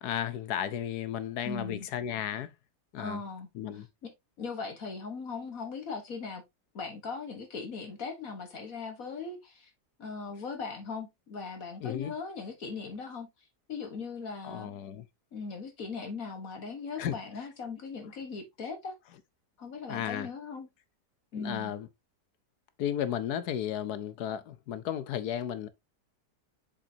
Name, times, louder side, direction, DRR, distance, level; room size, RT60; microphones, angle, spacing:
voice 1, 0.0-2.5 2.9-3.2 3.5-3.9 11.8-12.1 14.4-15.0 17.0-17.2 19.9-20.3 21.4-21.9 22.8-25.7, left 10 dB, 75° left, 1.2 m, -34 dB
voice 2, 1.4-1.9 3.0-3.8 4.4-6.4 6.7-9.7 10.0-13.3 13.7-14.7 15.3-18.9 19.6-20.7 21.3-21.7, left 4 dB, 55° left, 1.7 m, -39 dB
7.1 x 5.4 x 2.7 m
omnidirectional pair, 1.8 m